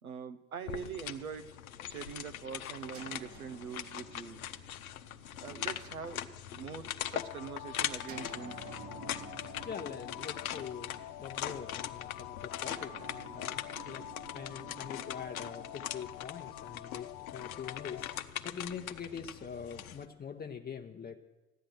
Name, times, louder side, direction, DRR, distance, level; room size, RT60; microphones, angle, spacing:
voice 1, 0.0-1.5 1.9-4.4 5.4-6.2 6.5-8.6, right 6 dB, 85° right, 9 dB, 1.1 m, -43 dB
sound 1, 0.7-20.0, left 11 dB, 80° left, 0.8 m, -41 dB
sound 2, 2.9-6.7 8.1-11.6 12.6-16.8, right 7 dB, 45° right, 1.6 m, -53 dB
sound 3, 7.2-18.2, left 17 dB, 45° left, 0.7 m, -47 dB
voice 2, 9.6-21.2, left 7 dB, 20° left, 3 dB, 0.9 m, -44 dB
15.5 x 10.0 x 7.8 m, 1.1 s
figure-of-eight pair, 70°, 42 cm